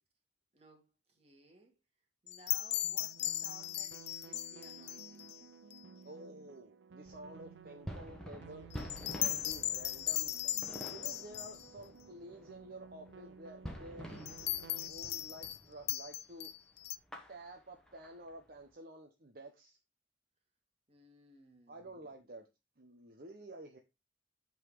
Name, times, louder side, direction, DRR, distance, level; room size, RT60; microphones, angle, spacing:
voice 1, 0.5-1.8 2.2-5.4 20.9-22.1, right 1 dB, 35° right, 2.0 m, -60 dB
sound 1, 2.3-5.4 5.7-5.8 8.7-11.7 14.3-15.6 15.9-17.0, left 14 dB, 60° left, 0.4 m, -37 dB
sound 2, 2.8-14.9, right 6 dB, 75° right, 0.5 m, -55 dB
voice 2, 6.0-8.7 9.1-10.6 10.9-14.2 14.5-16.5 17.3-19.8 21.7-22.5 22.8-23.8, right 1 dB, 55° right, 0.9 m, -51 dB
sound 3, 7.1-16.0 16.3-16.5 16.8-18.7, equal, 5° left, 1.4 m, -49 dB
8.1 x 4.0 x 4.8 m
head